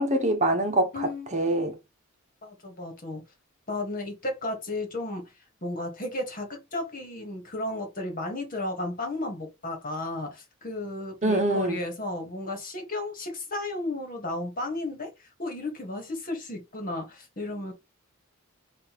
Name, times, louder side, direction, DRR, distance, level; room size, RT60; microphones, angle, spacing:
voice 1, 0.0-1.7 11.2-11.8, right 1 dB, 35° right, 1.1 m, -25 dB
voice 2, 0.9-1.4 2.4-3.2 3.7-5.3 5.6-17.7, left 2 dB, 40° left, 1.6 m, -34 dB
6.2 x 2.7 x 3.0 m
head